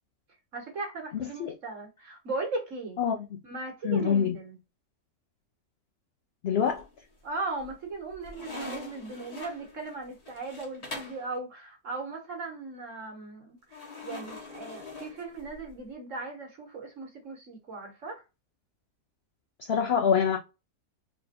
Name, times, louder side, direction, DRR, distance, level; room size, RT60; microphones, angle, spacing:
voice 1, 0.5-3.0 3.4-4.6 7.2-18.2, right 3 dB, 50° right, 1.7 m, -38 dB
voice 2, 3.8-4.3 6.4-6.8 19.7-20.4, left 7 dB, 70° left, 0.6 m, -25 dB
sound 1, 6.6-7.2 7.6-11.3 13.7-15.8, left 2 dB, 25° left, 1.2 m, -43 dB
4.1 x 3.4 x 2.6 m
omnidirectional pair, 1.7 m